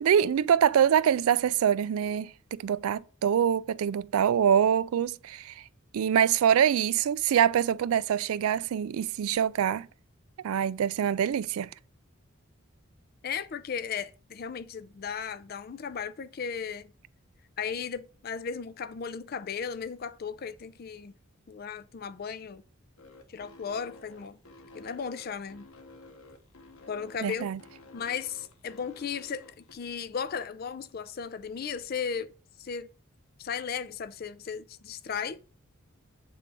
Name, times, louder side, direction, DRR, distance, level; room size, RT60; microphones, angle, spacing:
voice 1, 0.0-5.6 5.9-9.9 10.4-11.7 27.2-27.6, right 9 dB, 85° right, 0.3 m, -25 dB
voice 2, 13.2-16.9 17.6-21.1 21.5-22.6 23.3-24.4 24.7-25.7 26.9-27.5 27.9-32.3 32.6-32.9 33.4-35.4, left 6 dB, 45° left, 0.4 m, -36 dB
sound 1, 23.0-29.7, left 2 dB, 80° left, 1.0 m, -52 dB
7.8 x 3.7 x 4.7 m
head